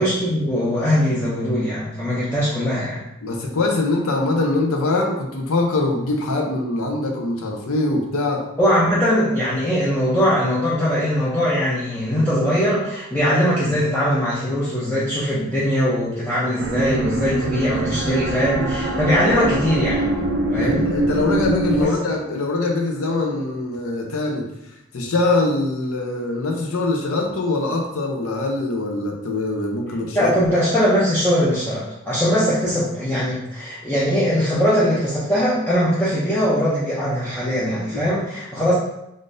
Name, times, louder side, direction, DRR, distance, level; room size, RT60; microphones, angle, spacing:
voice 1, 0.0-3.0 8.6-20.2 20.5-20.9 21.8-22.0 30.1-38.7, equal, 10° left, -9 dB, 0.4 m, -21 dB
voice 2, 3.2-8.5 18.4-18.7 20.6-24.5 24.9-30.3 37.9-38.0, left 2 dB, 70° left, 1 dB, 0.6 m, -23 dB
sound 1, 16.6-21.8, right 1 dB, 60° right, 0.4 m, -23 dB
3.6 x 2.5 x 2.5 m, 0.85 s
head